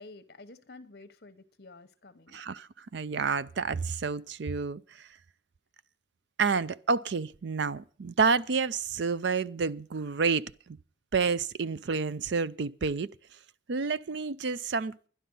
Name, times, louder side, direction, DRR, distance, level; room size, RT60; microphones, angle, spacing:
voice 1, 0.0-2.4, left 3 dB, 55° left, 1.0 m, -50 dB
voice 2, 2.3-5.1 6.4-10.8 11.1-13.1 13.7-15.0, right 5 dB, 65° right, 0.5 m, -29 dB
12.0 x 11.0 x 5.4 m
head